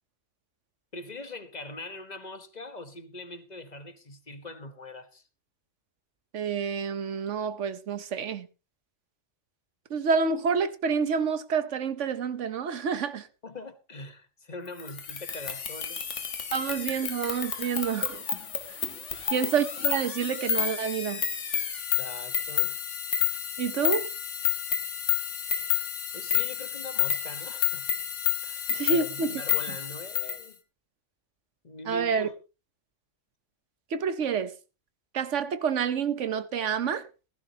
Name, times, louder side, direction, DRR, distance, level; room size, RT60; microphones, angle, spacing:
voice 1, 0.9-5.2 13.4-16.0 19.1-19.4 22.0-22.8 26.1-27.9 28.4-30.6 31.6-32.3, left 2 dB, 40° left, 1.2 m, -42 dB
voice 2, 6.3-8.5 9.9-13.3 16.5-18.2 19.3-21.2 23.6-24.1 28.7-29.3 29.7-29.8 31.9-32.3 33.9-34.5 35.1-37.1, right 6 dB, 90° right, 1.3 m, -28 dB
sound 1, 14.8-30.4, left 9 dB, 85° left, 1.6 m, -30 dB
15.5 x 15.0 x 2.9 m
omnidirectional pair, 1.2 m